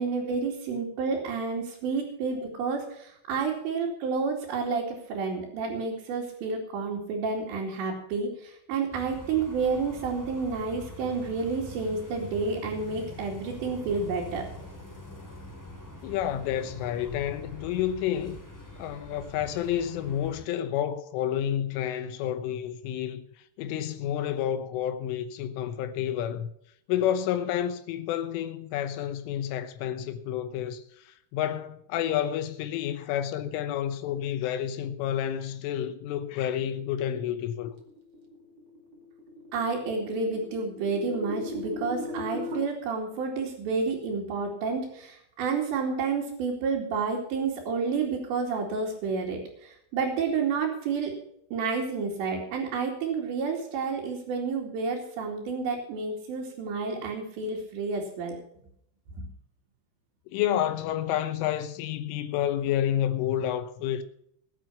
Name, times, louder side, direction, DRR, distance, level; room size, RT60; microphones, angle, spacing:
voice 1, 0.0-14.4 39.5-49.4 49.9-51.1 51.5-58.4 59.2-59.3, right 4 dB, 65° right, 4.7 m, -30 dB
sound 1, 8.9-20.4, left 1 dB, 10° left, 0.9 m, -44 dB
voice 2, 16.0-18.4 18.8-23.3 23.6-26.5 26.9-30.8 31.3-37.7 60.3-64.0, left 10 dB, 85° left, 3.6 m, -29 dB
sound 2, 37.9-42.6, left 2 dB, 45° right, 2.8 m, -39 dB
20.5 x 7.7 x 5.7 m
omnidirectional pair, 5.6 m